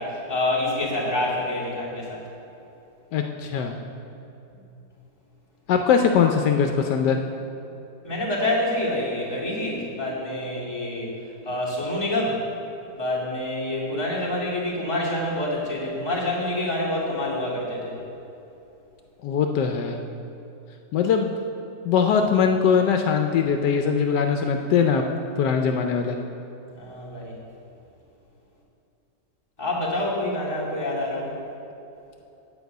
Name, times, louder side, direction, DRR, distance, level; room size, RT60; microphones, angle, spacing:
voice 1, 0.0-2.2 8.0-11.1 11.4-12.4 12.9-18.0 26.8-27.3 29.6-31.3, left 1 dB, 15° left, -7 dB, 2.2 m, -27 dB
voice 2, 3.1-3.8 5.7-7.2 19.2-20.0 20.9-21.3 21.8-25.0 25.4-26.2, left 6 dB, 80° left, 4 dB, 1.2 m, -21 dB
9.3 x 5.4 x 8.0 m, 2.9 s
omnidirectional pair, 1.8 m